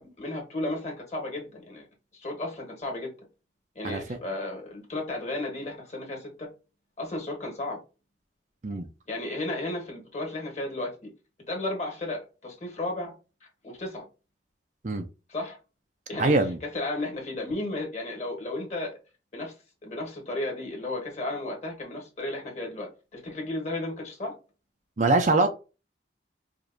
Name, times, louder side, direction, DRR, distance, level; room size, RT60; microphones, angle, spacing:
voice 1, 0.0-1.9 2.1-3.1 3.8-6.5 7.0-7.8 9.1-11.1 11.5-13.1 13.6-14.0 15.3-15.6 16.1-19.0 19.3-19.5 19.8-24.3, left 2 dB, 40° left, 1.7 m, -34 dB
voice 2, 16.2-16.6 25.0-25.5, right 2 dB, 45° right, 0.6 m, -23 dB
4.9 x 2.6 x 2.7 m
head